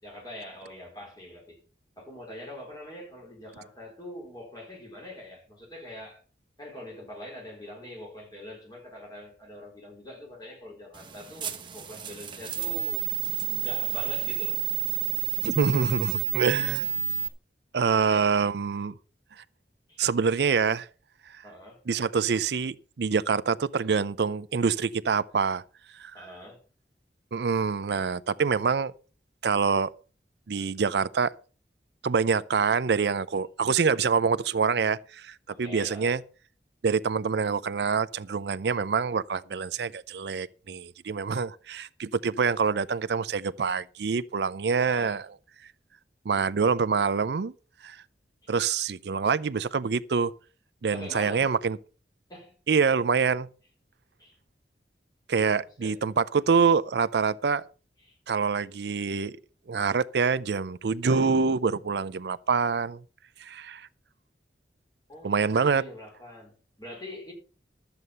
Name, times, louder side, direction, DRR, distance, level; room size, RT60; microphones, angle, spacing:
voice 1, 0.0-1.6 2.0-6.2 6.6-13.1 13.5-14.6 17.9-18.3 19.9-20.0 21.4-21.8 26.1-26.6 35.5-36.2 44.8-45.2 48.4-48.5 50.9-51.5 52.3-52.5 54.2-54.4 55.8-55.9 58.0-58.2 65.1-67.3, left 1 dB, 20° left, 4.6 m, -44 dB
sound 1, 10.9-17.3, right 9 dB, 25° right, 1.0 m, -30 dB
voice 2, 15.4-16.9 17.7-18.9 20.0-20.9 21.9-25.6 26.0-26.3 27.3-28.9 29.4-29.9 30.5-31.3 32.0-36.2 36.8-45.2 46.3-47.5 47.8-48.0 48.5-50.3 50.8-51.8 52.7-53.5 55.3-57.6 58.3-59.3 59.7-63.0 63.4-63.9 65.2-65.8, right 5 dB, 70° right, 0.5 m, -26 dB
12.5 x 8.0 x 5.5 m
head